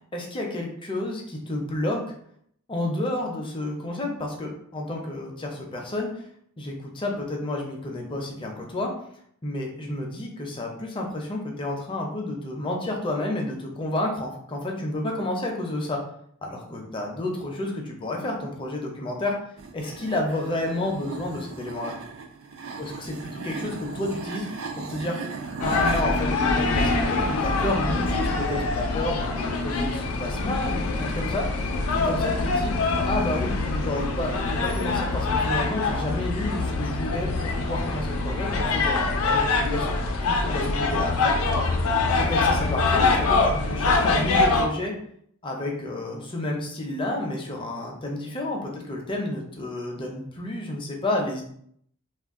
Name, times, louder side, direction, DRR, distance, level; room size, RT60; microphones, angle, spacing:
voice 1, 0.1-2.0 2.7-6.2 6.6-8.9 9.4-16.0 16.4-19.3 19.7-22.0 22.8-23.2 23.4-25.2 25.6-31.5 31.9-32.7 33.0-39.0 39.3-39.9 40.2-41.3 42.2-44.9 45.4-51.4, left 1 dB, 25° left, 0 dB, 0.5 m, -30 dB
sound 1, 19.6-26.0, right 4 dB, 65° right, 0.4 m, -36 dB
sound 2, 25.6-44.7, left 3 dB, 90° left, 0.4 m, -24 dB
2.4 x 2.1 x 3.5 m, 0.67 s
head